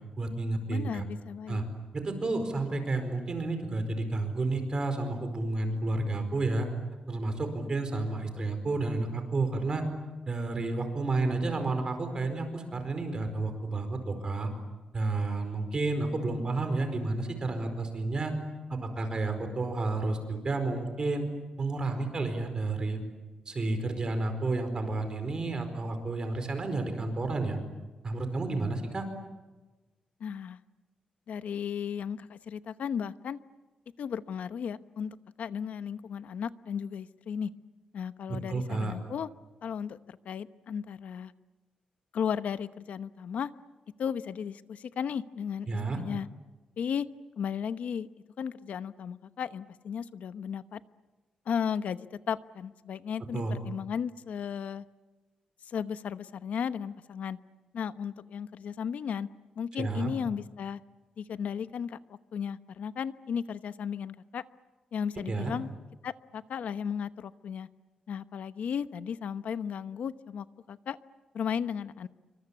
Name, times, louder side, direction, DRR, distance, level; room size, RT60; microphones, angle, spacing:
voice 1, 0.2-1.0 1.5-1.6 1.9-6.7 7.1-9.8 10.3-14.5 14.9-18.3 18.7-21.3 21.6-23.0 23.5-27.6 28.0-29.1 38.5-38.9 45.7-46.0 53.3-53.6 59.8-60.1 65.3-65.5, right 3 dB, 30° right, 7 dB, 4.7 m, -31 dB
voice 2, 0.7-1.6 30.2-30.6 31.3-33.4 34.0-37.5 37.9-39.3 39.6-41.3 42.1-43.5 44.0-46.3 46.8-47.1 47.4-48.1 48.4-50.8 51.5-54.8 55.6-57.4 57.7-59.3 59.6-60.8 61.2-64.4 64.9-65.7 66.0-67.7 68.1-71.0 71.3-72.1, left 7 dB, 75° left, 13 dB, 1.0 m, -35 dB
28.0 x 25.0 x 8.5 m, 1.2 s
wide cardioid pair, 165°, 2 cm